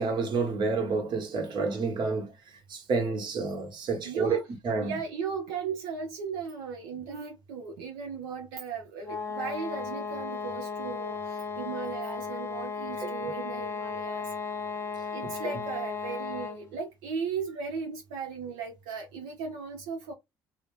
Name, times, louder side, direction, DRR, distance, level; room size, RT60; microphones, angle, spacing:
voice 1, 0.0-2.3 2.7-5.0 13.0-13.1 15.2-15.5, right 4 dB, 55° right, 1.1 m, -29 dB
voice 2, 4.0-4.4 4.8-14.3 15.1-20.1, right 5 dB, 85° right, 0.6 m, -36 dB
sound 1, 9.0-16.7, left 5 dB, 25° left, 0.6 m, -35 dB
2.8 x 2.0 x 3.0 m
supercardioid pair, 70°, 9 cm